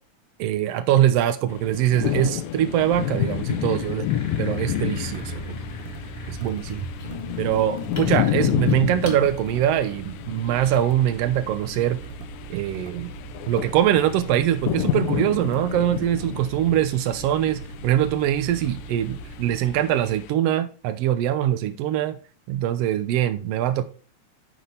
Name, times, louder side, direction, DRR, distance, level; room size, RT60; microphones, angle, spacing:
voice 1, 0.4-4.1 4.4-5.5 6.3-6.9 7.4-12.0 12.5-13.1 13.5-22.2 22.5-23.8, right 11 dB, 85° right, 1.4 m, -23 dB
sound 1, 1.5-20.3, left 12 dB, 80° left, 1.8 m, -30 dB
sound 2, 2.9-9.2, left 2 dB, 35° left, 0.6 m, -36 dB
sound 3, 4.8-19.7, right 3 dB, 65° right, 1.6 m, -40 dB
10.0 x 4.1 x 3.3 m
omnidirectional pair, 3.4 m